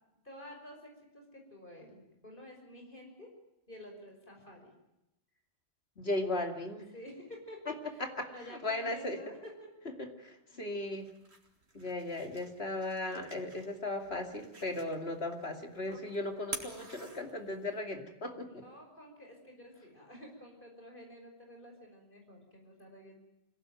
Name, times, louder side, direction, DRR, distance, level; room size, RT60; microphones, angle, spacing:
voice 1, 0.2-3.3 3.7-4.7 6.9-9.7 10.5-10.7 15.9-16.0 18.5-23.2, equal, 50° left, 2 dB, 5.9 m, -51 dB
voice 2, 6.0-6.9 7.7-7.8 8.0-9.2 10.0-11.1 11.7-18.6, left 2 dB, 70° left, 4 dB, 2.9 m, -37 dB
sound 1, 10.8-17.8, right 2 dB, 80° right, 3.3 m, -49 dB
25.5 x 17.5 x 9.2 m, 0.89 s
omnidirectional pair, 1.1 m